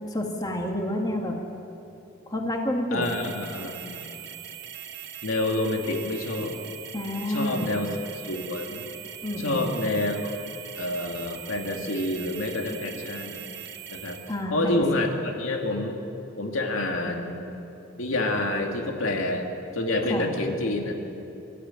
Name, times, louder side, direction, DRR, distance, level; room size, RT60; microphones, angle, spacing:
voice 1, 0.1-1.4 2.3-3.1 6.9-7.8 9.2-9.7 14.3-14.8 20.1-20.3, left 1 dB, 20° left, 1 dB, 2.1 m, -29 dB
voice 2, 2.9-4.1 5.2-6.6 7.3-7.9 8.3-8.8 9.4-10.3 10.8-13.4 13.9-14.2 14.5-15.1 15.4-16.0 16.4-17.4 18.0-19.4 19.7-21.0, left 2 dB, 85° left, 2 dB, 2.4 m, -28 dB
sound 1, 3.0-14.4, right 10 dB, 60° right, 1.5 m, -41 dB
25.0 x 13.5 x 9.1 m, 2.9 s
head